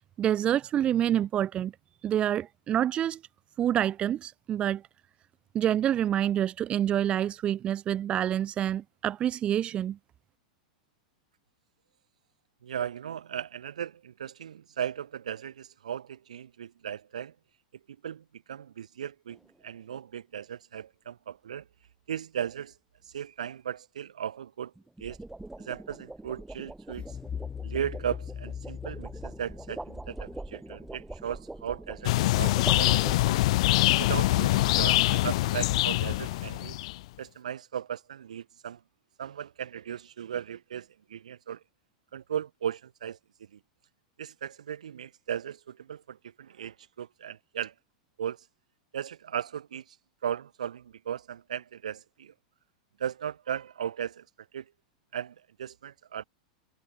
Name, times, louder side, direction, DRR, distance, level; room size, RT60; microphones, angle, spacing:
voice 1, 0.2-1.7 2.0-3.2 3.6-4.8 5.5-10.0, right 10 dB, 30° right, 0.5 m, -27 dB
voice 2, 12.6-17.3 17.9-21.7 22.1-22.8 23.0-24.7 25.0-25.2 25.6-27.2 27.6-33.4 34.0-36.8 37.2-38.8 39.2-41.6 42.1-43.6 44.2-47.7 48.2-48.5 48.9-50.0 50.2-52.3 53.0-54.2 54.5-54.7 55.1-56.2, right 9 dB, 80° right, 1.2 m, -37 dB
sound 1, 19.3-19.6 24.7-33.6, right 2 dB, 5° right, 1.5 m, -43 dB
sound 2, 26.9-31.8, left 7 dB, 25° left, 5.5 m, -41 dB
sound 3, 32.0-37.0, left 18 dB, 65° left, 0.4 m, -24 dB
hypercardioid pair, 105°, 4 cm